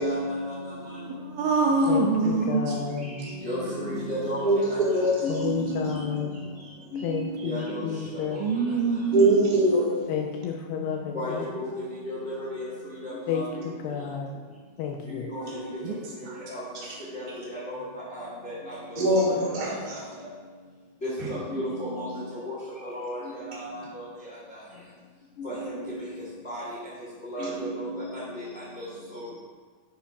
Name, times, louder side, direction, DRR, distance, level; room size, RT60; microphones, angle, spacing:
voice 1, 0.0-1.0 1.7-1.9 2.2-2.3 3.1-4.4 5.2-6.1 6.9-7.8 8.3-8.4 9.1-9.7 11.1-11.3 11.6-11.7 12.0-12.6 13.0-13.5 15.1-15.6 16.5-16.6 17.1-17.8 18.1-18.2 18.7-18.8 19.9-20.0 21.0-22.1 22.5-22.6 22.9-23.8 25.4-26.0 26.4-26.6 27.3-28.2 29.1-29.3, right 1 dB, 45° left, -7 dB, 0.8 m, -33 dB
voice 2, 0.9-2.7 8.4-9.6 10.9-11.0 15.8-16.0 16.3-16.4, right 3 dB, 80° right, 0 dB, 2.3 m, -25 dB
voice 3, 1.9-3.1 5.3-6.4 7.0-8.4 10.1-11.5 13.3-14.3 14.8-15.3, left 7 dB, 85° left, 2 dB, 2.5 m, -31 dB
voice 4, 4.4-5.1 9.1-9.8 19.0-20.0 27.4-27.5, right 1 dB, 15° right, -7 dB, 1.9 m, -22 dB
8.6 x 6.0 x 5.6 m, 1.5 s
omnidirectional pair, 5.2 m